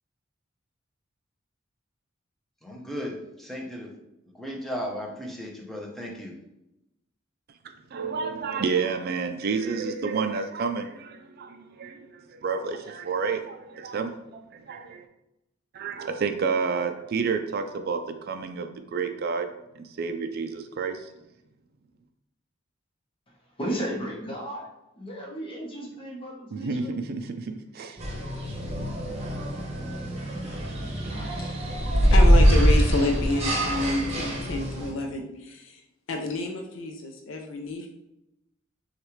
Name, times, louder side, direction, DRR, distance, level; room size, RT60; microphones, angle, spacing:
voice 1, 2.6-3.9 4.3-6.3, equal, ahead, -1 dB, 0.8 m, -35 dB
voice 2, 7.9-15.1 15.7-19.5 19.8-21.1 26.5-28.0, right 5 dB, 50° right, 6 dB, 0.4 m, -30 dB
voice 3, 23.3-24.7 25.0-26.9, right 1 dB, 25° left, -3 dB, 1.1 m, -34 dB
sound 1, 28.0-34.9, equal, 30° right, 1.0 m, -23 dB
voice 4, 32.1-35.8 36.1-37.9, left 2 dB, 70° left, 3 dB, 0.5 m, -29 dB
6.2 x 2.4 x 3.1 m, 0.90 s
head